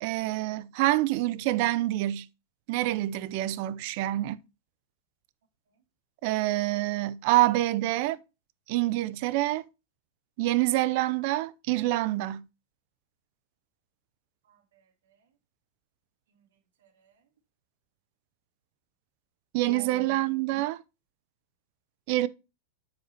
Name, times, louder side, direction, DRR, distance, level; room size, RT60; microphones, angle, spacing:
voice 1, 0.0-2.3 2.7-4.4 6.2-8.2 8.7-9.7 10.4-12.4 19.5-20.8 22.1-22.3, right 16 dB, 45° right, 0.5 m, -26 dB
voice 2, 14.4-15.3 16.3-16.5 16.8-17.2 19.6-20.6, right 4 dB, 75° right, 1.7 m, -49 dB
7.6 x 4.3 x 4.1 m
supercardioid pair, 155°, 0 cm